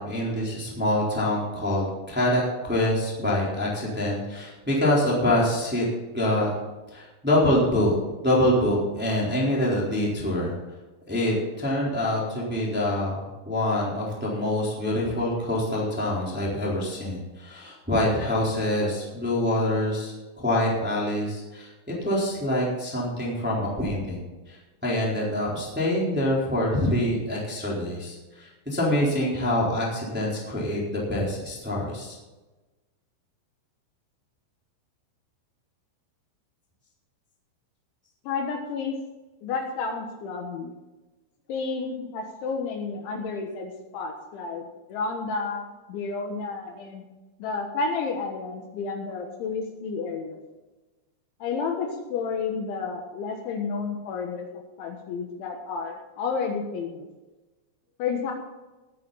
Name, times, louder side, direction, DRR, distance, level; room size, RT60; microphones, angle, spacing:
voice 1, 0.0-5.8 6.1-6.5 6.9-7.9 8.2-10.5 11.1-13.2 13.4-24.2 24.5-24.6 24.8-32.2, left 1 dB, ahead, -5 dB, 2.8 m, -25 dB
voice 2, 38.3-39.0 39.4-40.7 41.5-44.6 44.9-47.0 47.4-50.4 51.4-54.5 54.8-57.1 58.0-58.3, left 4 dB, 70° left, 2 dB, 3.5 m, -31 dB
19.5 x 9.3 x 4.1 m, 1.1 s
omnidirectional pair, 6.0 m